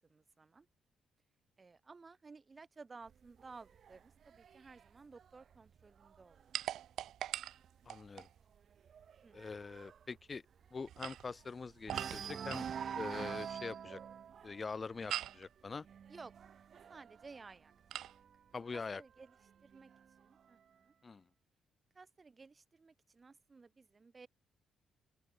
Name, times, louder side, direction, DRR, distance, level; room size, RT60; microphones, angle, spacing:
voice 1, 0.1-0.7 1.6-6.5 9.2-9.4 16.1-16.3 16.7-17.7 18.7-19.3 19.6-19.9 20.2-20.6 20.9-21.0 21.9-24.3, right 4 dB, 30° right, 6.0 m, -56 dB
sound 1, 3.1-6.7 7.1-7.4 7.7-7.8 8.2-11.4 11.8-18.4 19.2-20.2, right 8 dB, 55° right, 2.7 m, -47 dB
sound 2, 6.5-8.3 10.8-12.8 15.1-15.5 17.9-18.2, right 12 dB, 75° right, 1.0 m, -42 dB
voice 2, 7.8-8.3 9.3-10.4 10.7-12.7 12.9-14.0 14.4-15.8 18.5-19.0 21.0-21.2, left 4 dB, 30° left, 4.9 m, -44 dB
open air
cardioid pair, 90°, 0 cm